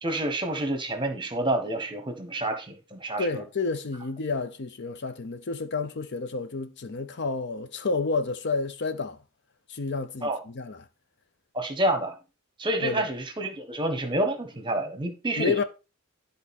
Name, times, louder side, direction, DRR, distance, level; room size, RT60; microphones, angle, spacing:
voice 1, 0.0-3.4 10.2-10.4 11.5-12.1 12.6-15.6, right 1 dB, 20° right, 1.2 m, -28 dB
voice 2, 3.2-9.2 9.7-10.9 12.8-13.1 15.4-15.6, left 4 dB, 55° left, 0.7 m, -30 dB
11.0 x 3.9 x 4.2 m
head